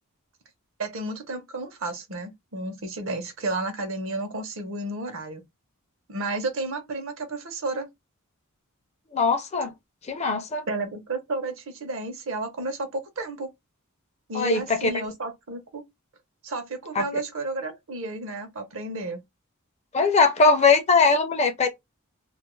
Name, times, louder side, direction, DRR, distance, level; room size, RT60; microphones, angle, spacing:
voice 1, 0.8-5.4 6.1-7.9 10.7-13.5 14.3-15.8 16.4-19.2, right 2 dB, 65° right, 0.7 m, -32 dB
voice 2, 9.1-9.7 10.1-10.7 14.3-14.9 16.9-17.0 19.9-21.7, left 4 dB, 30° left, 0.4 m, -20 dB
2.3 x 2.0 x 3.0 m
head